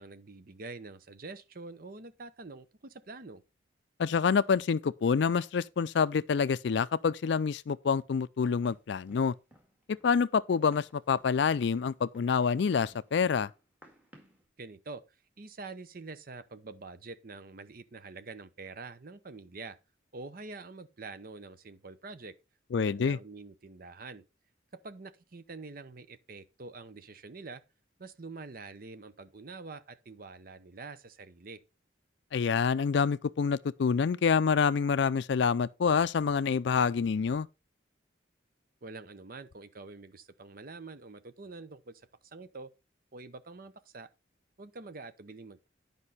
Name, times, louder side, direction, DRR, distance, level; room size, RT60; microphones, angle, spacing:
voice 1, 0.0-3.4 14.6-15.0 15.4-19.8 20.1-22.3 22.7-24.2 24.8-27.6 28.0-31.6 38.8-42.7 43.1-44.1 44.6-45.7, right 3 dB, 50° right, 0.7 m, -46 dB
voice 2, 4.0-9.3 9.9-13.5 22.7-23.2 32.3-37.5, left 6 dB, 65° left, 0.4 m, -27 dB
Run, 8.6-14.4, equal, 10° right, 1.9 m, -60 dB
9.8 x 5.3 x 4.1 m
head